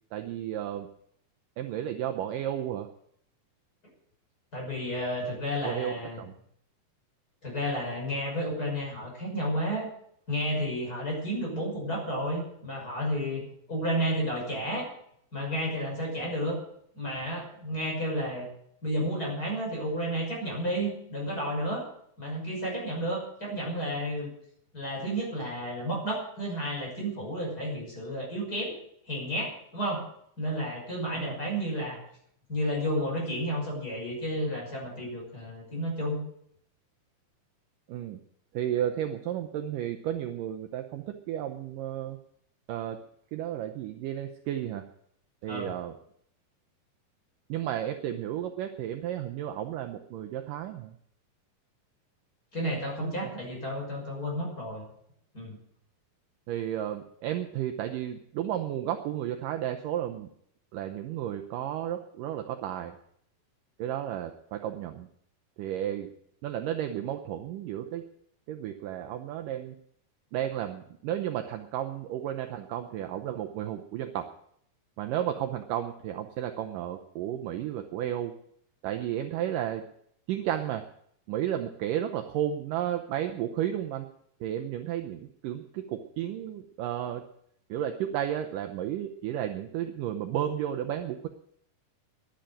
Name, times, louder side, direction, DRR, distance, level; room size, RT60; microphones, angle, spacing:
voice 1, 0.1-0.9 1.6-2.9 5.6-6.3 31.2-31.4 37.9-38.2 38.5-42.2 42.7-43.0 43.3-44.8 45.4-45.9 47.5-50.9 53.0-53.2 56.5-60.3 60.7-62.9 63.8-65.1 65.6-66.1 66.4-68.0 68.5-69.8 70.3-74.3 75.0-78.3 78.8-79.9 80.3-80.8 81.3-84.1 84.4-87.2 87.7-91.3, right 11 dB, 75° right, 5 dB, 2.2 m, -33 dB
voice 2, 4.5-6.2 7.4-9.9 10.3-14.9 15.3-16.6 16.9-18.5 18.8-21.8 22.2-24.3 24.7-28.8 29.1-30.0 30.4-32.0 32.5-36.2 45.5-45.7 52.5-54.8 55.3-55.6, equal, 25° left, -1 dB, 6.5 m, -31 dB
11.5 x 10.5 x 8.8 m, 0.69 s
omnidirectional pair, 4.4 m